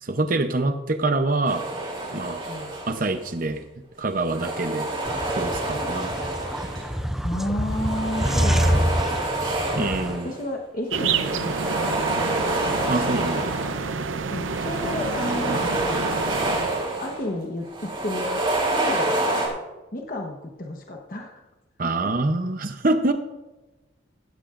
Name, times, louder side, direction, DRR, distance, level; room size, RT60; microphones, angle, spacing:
voice 1, 0.0-1.7 2.1-2.4 2.9-3.6 4.0-4.9 5.3-6.2 9.4-10.3 12.9-13.5 21.8-23.1, right 2 dB, 45° right, 7 dB, 0.8 m, -25 dB
sound 1, 1.5-3.3 4.1-7.1 7.6-10.4 10.9-13.9 14.3-17.3 17.6-19.5, right 2 dB, 25° right, 3.8 m, -28 dB
sound 2, 5.0-10.2, equal, ahead, 0.4 m, -26 dB
voice 2, 7.2-8.8 9.8-12.3 14.3-16.0 17.0-18.4 18.7-19.2 19.9-21.4 21.8-22.1, left 1 dB, 45° left, 1 dB, 1.2 m, -32 dB
sound 3, 10.9-16.8, right 5 dB, 85° right, 0.7 m, -29 dB
15.5 x 12.5 x 2.6 m, 1.1 s
head